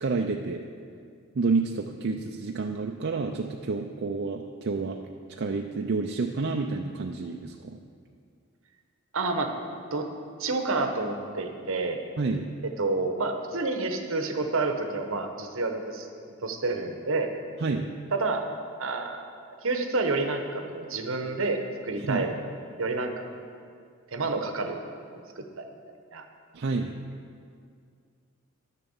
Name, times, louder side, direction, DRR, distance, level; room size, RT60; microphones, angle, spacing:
voice 1, 0.0-0.6 1.3-5.0 5.4-7.8 12.2-12.5 17.6-17.9 22.1-22.3 26.5-27.0, right 3 dB, 55° right, 2 dB, 0.5 m, -29 dB
voice 2, 9.1-9.5 9.9-10.1 10.4-12.0 12.8-16.1 16.4-17.3 18.1-18.4 18.8-19.2 19.6-22.4 22.8-23.3 24.1-24.8 25.4-26.3, right 3 dB, 70° right, 5 dB, 1.1 m, -29 dB
11.0 x 6.8 x 7.1 m, 2.2 s
head